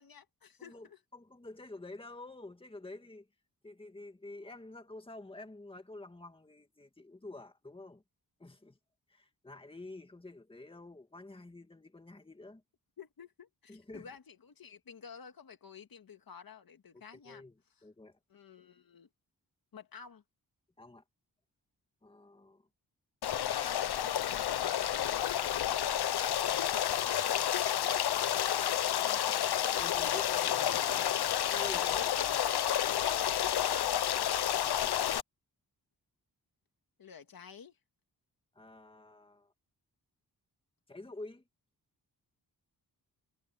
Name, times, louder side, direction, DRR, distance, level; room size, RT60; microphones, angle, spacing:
voice 1, 0.0-1.0 13.0-17.4 17.8-17.9 18.3-19.1 19.7-20.2 29.0-29.6 32.8-34.1 37.0-37.8, left 6 dB, 65° left, 2.0 m, -51 dB
voice 2, 1.1-3.3 3.6-8.0 8.4-8.8 9.1-12.6 13.7-14.1 16.9-17.5 17.8-18.2 20.8-21.0 22.0-22.7 23.3-23.9 25.0-25.6 29.8-32.2 38.5-39.5 40.9-41.4, left 2 dB, 15° left, 2.1 m, -49 dB
Stream, 23.2-35.2, left 10 dB, 85° left, 0.8 m, -30 dB
wide cardioid pair, 140°, 38 cm